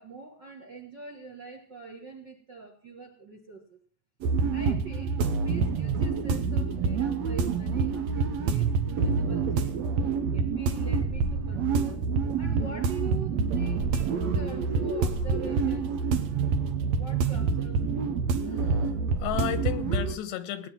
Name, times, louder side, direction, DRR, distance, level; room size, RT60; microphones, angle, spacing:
voice 1, 0.0-3.8 4.5-5.2 5.4-9.7 10.3-12.0 12.4-15.9 16.9-18.1, right 4 dB, 45° right, 5 dB, 1.4 m, -44 dB
sound 1, 4.2-20.2, right 5 dB, 70° right, 1.6 m, -27 dB
voice 2, 18.5-20.7, left 12 dB, 85° left, 13 dB, 3.4 m, -34 dB
18.5 x 9.8 x 6.0 m, 0.42 s
omnidirectional pair, 4.8 m